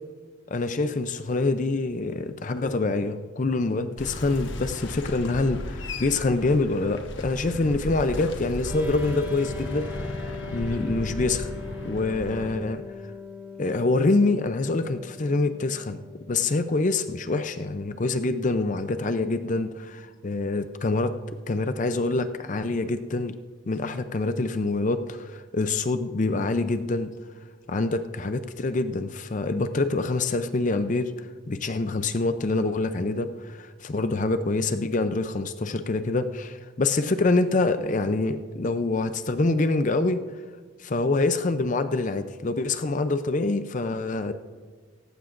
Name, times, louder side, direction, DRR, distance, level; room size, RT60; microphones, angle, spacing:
voice 1, 0.5-10.0 10.5-11.5 11.8-12.8 13.6-16.0 16.3-21.1 21.5-23.4 23.7-27.1 27.7-31.1 31.5-40.2 40.8-44.3, left 3 dB, 40° left, 10 dB, 0.5 m, -26 dB
sound 1, 4.0-12.5, left 1 dB, 65° left, 1.2 m, -35 dB
sound 2, 8.6-20.2, left 4 dB, 10° right, 3.3 m, -42 dB
17.5 x 15.0 x 2.6 m, 1.5 s
head